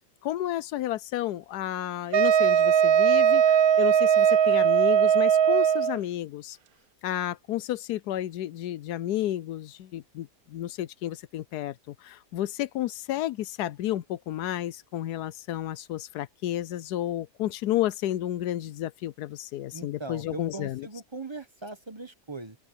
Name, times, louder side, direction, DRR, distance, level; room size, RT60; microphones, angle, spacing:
voice 1, 0.2-6.6 7.0-20.9, left 13 dB, 80° left, 1.1 m, -31 dB
Wind instrument woodwind instrument, 2.1-6.0, right 8 dB, 65° right, 1.3 m, -20 dB
voice 2, 19.7-22.6, right 3 dB, 20° right, 0.8 m, -40 dB
open air
omnidirectional pair, 1.8 m